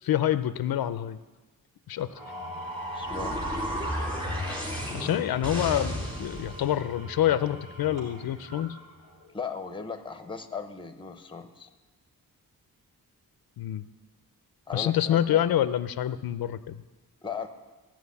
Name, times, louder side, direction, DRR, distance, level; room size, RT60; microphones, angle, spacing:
voice 1, 0.0-1.2 1.9-2.1 4.9-8.8 13.6-13.9 14.7-16.8, left 11 dB, 85° left, 13 dB, 0.6 m, -27 dB
Engine / Tools, 2.0-9.5, right 1 dB, 85° right, 4.5 m, -45 dB
sound 1, 2.2-6.7, equal, 15° right, 2.6 m, -33 dB
voice 2, 2.9-3.4 9.3-11.7 14.7-15.4 17.2-17.5, left 5 dB, 15° left, 7 dB, 0.8 m, -37 dB
14.5 x 6.1 x 8.4 m, 1.2 s
wide cardioid pair, 155°, 35 cm